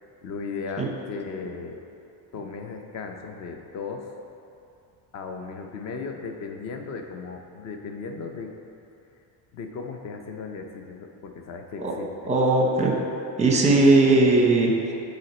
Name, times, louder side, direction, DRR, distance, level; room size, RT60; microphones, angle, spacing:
voice 1, 0.2-1.8 2.3-4.2 5.1-8.5 9.5-12.3 13.7-13.8, left 5 dB, 35° left, 4 dB, 0.6 m, -36 dB
voice 2, 12.3-12.9 13.4-14.9, right 2 dB, 15° right, 0 dB, 0.7 m, -19 dB
9.5 x 4.0 x 4.2 m, 2.7 s
cardioid pair, 160°, 49 cm